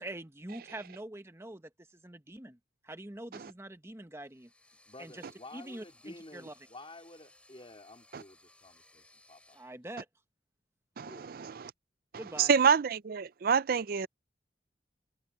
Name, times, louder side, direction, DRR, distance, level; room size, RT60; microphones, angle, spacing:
voice 1, 0.0-2.6 2.8-4.5 5.0-5.2 5.5-6.5 9.5-10.1 12.2-12.5, right 1 dB, 15° right, 1.1 m, -44 dB
sound 1, 4.2-9.8, left 2 dB, 5° left, 5.1 m, -62 dB
voice 2, 4.9-9.6 11.1-11.3, left 2 dB, 30° left, 3.5 m, -51 dB
voice 3, 11.0-11.7 12.4-14.1, right 6 dB, 55° right, 0.4 m, -27 dB
head